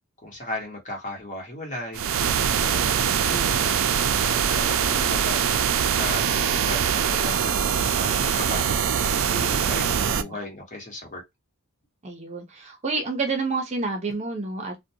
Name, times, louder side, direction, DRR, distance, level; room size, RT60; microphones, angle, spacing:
voice 1, 0.2-2.0 2.6-3.7 4.2-5.6 6.0-11.2, left 1 dB, 35° left, 1.2 m, -36 dB
sound 1, 1.9-10.2, right 8 dB, 70° right, 0.4 m, -23 dB
voice 2, 9.5-10.4 12.0-14.7, right 3 dB, 35° right, 0.6 m, -30 dB
2.5 x 2.2 x 2.7 m
head